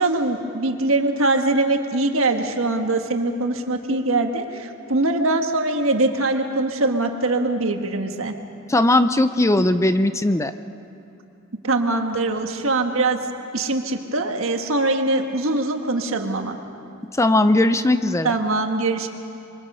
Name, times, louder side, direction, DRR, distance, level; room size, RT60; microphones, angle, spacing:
voice 1, 0.0-8.3 11.6-13.2 13.5-16.6 18.2-19.1, right 2 dB, 70° right, 4 dB, 1.6 m, -22 dB
voice 2, 8.7-10.5 17.2-18.3, left 1 dB, 15° left, 11 dB, 0.5 m, -18 dB
26.0 x 23.5 x 5.6 m, 2.8 s
head